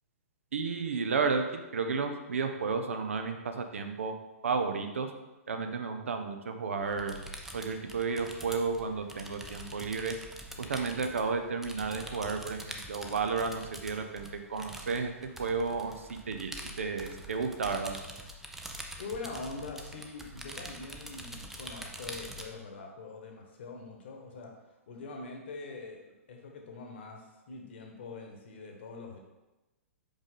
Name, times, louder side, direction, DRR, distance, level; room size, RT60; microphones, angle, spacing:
voice 1, 0.5-1.4 1.7-4.1 4.4-5.1 5.5-7.1 7.5-10.2 10.6-15.1 15.4-16.5 16.8-18.0, right 4 dB, 60° right, 6 dB, 0.6 m, -32 dB
sound 1, 6.8-22.4, right 1 dB, 5° right, 0.4 m, -45 dB
voice 2, 19.0-24.5 24.9-29.2, left 3 dB, 50° left, 2 dB, 1.1 m, -43 dB
5.1 x 5.1 x 3.8 m, 1.0 s
figure-of-eight pair, 115°, 8 cm